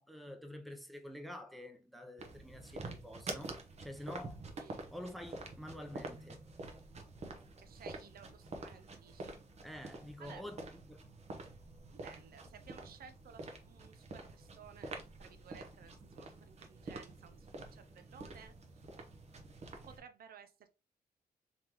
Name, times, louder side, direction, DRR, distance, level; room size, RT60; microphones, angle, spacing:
voice 1, 0.0-4.4 4.9-6.5 9.6-10.6 10.9-11.1, left 1 dB, ahead, 0.6 m, -48 dB
sound 1, 2.2-20.0, right 3 dB, 45° right, 0.9 m, -48 dB
voice 2, 7.6-9.4 10.2-10.4 11.8-18.5 19.9-20.7, right 7 dB, 70° right, 0.6 m, -57 dB
3.8 x 3.4 x 3.0 m
wide cardioid pair, 135°, 16 cm